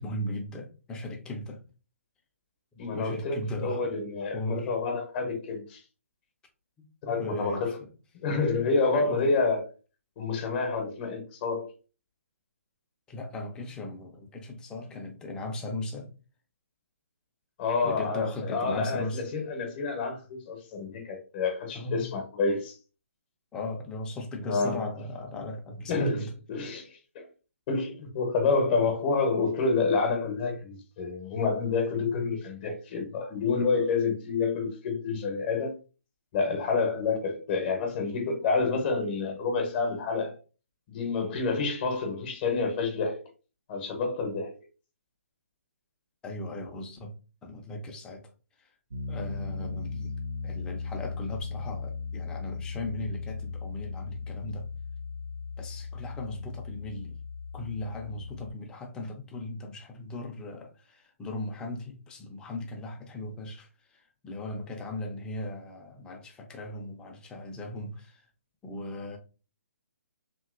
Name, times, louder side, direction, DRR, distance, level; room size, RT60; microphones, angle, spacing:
voice 1, 0.0-1.6 2.9-3.9 4.2-4.7 7.1-7.9 9.0-9.2 13.1-16.1 17.8-19.2 21.7-22.1 23.5-26.3 46.2-47.1 47.4-48.2 48.6-48.7 49.1-50.2 50.4-54.7 55.6-57.2 57.5-68.2 68.6-69.2, left 1 dB, 10° left, 0.5 m, -38 dB
voice 2, 2.8-5.8 7.0-7.8 8.2-9.7 10.2-11.7 17.6-22.8 24.5-24.8 25.9-27.3 27.7-35.7 36.3-40.3 40.9-43.2 43.7-44.6, left 4 dB, 35° left, 0.8 m, -28 dB
Piano, 48.9-58.5, left 4 dB, 80° right, 0.4 m, -37 dB
2.9 x 2.8 x 2.5 m
figure-of-eight pair, 145°, 8 cm